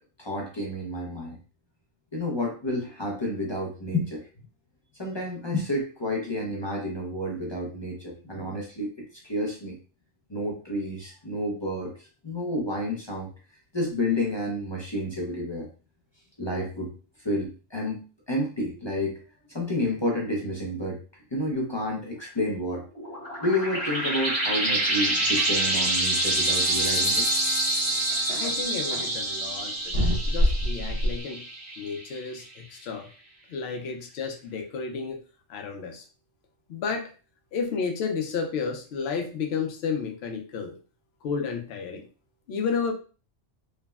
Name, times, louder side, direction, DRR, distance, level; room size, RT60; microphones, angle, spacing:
voice 1, 0.2-1.4 2.1-4.3 5.0-8.9 9.2-9.8 10.3-13.3 13.7-15.7 16.4-16.9 17.2-18.0 18.3-19.1 19.5-21.0 21.3-22.8 23.4-27.3, left 1 dB, 35° left, -1 dB, 0.4 m, -30 dB
sound 1, 23.0-32.1, right 1 dB, 20° right, 0.9 m, -27 dB
sound 2, 25.4-25.5 27.4-27.5 28.1-29.1 29.9-31.2, equal, 65° right, 1.4 m, -26 dB
voice 2, 28.3-31.4 31.8-33.1 33.5-35.2 35.5-36.0 36.7-37.1 37.5-40.8 41.2-42.0 42.5-42.9, left 5 dB, 65° left, 4 dB, 0.8 m, -32 dB
3.4 x 2.0 x 2.2 m, 0.36 s
omnidirectional pair, 1.2 m